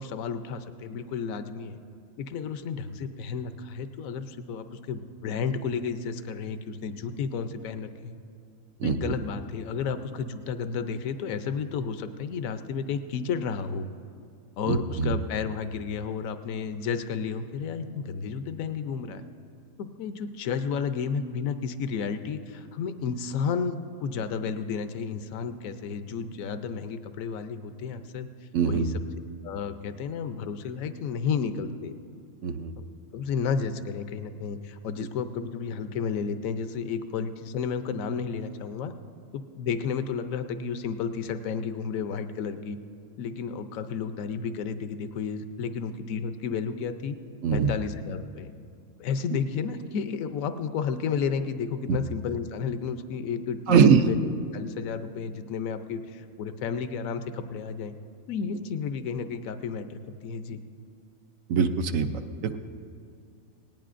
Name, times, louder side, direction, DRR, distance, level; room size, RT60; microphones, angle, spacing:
voice 1, 0.0-1.8 2.2-8.2 8.8-13.9 14.6-19.2 19.8-28.3 28.6-28.9 29.4-31.9 33.1-38.9 39.3-42.8 43.2-47.2 47.5-48.5 49.0-54.2 54.5-57.9 58.3-60.6, left 6 dB, 80° left, 9 dB, 1.1 m, -32 dB
voice 2, 8.8-9.1 14.7-15.1 28.5-28.9 32.4-32.7 47.4-47.7 49.3-49.4 51.9-52.0 53.7-54.0 61.5-62.1 62.4-62.6, right 6 dB, 75° right, 8 dB, 1.0 m, -22 dB
18.5 x 18.5 x 2.5 m, 2.3 s
omnidirectional pair, 1.4 m